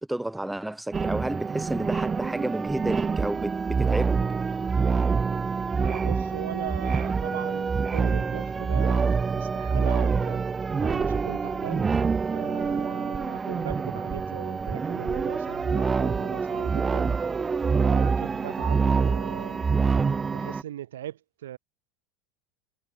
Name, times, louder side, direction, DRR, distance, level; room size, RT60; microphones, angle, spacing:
voice 1, 0.1-4.1, right 1 dB, 5° right, 6.5 m, -31 dB
sound 1, 0.9-20.6, right 5 dB, 20° right, 0.6 m, -26 dB
voice 2, 5.8-10.4 10.8-11.9 12.3-17.1 17.8-19.7 20.3-21.6, right 12 dB, 85° right, 7.7 m, -39 dB
hypercardioid pair, 95°, 0 cm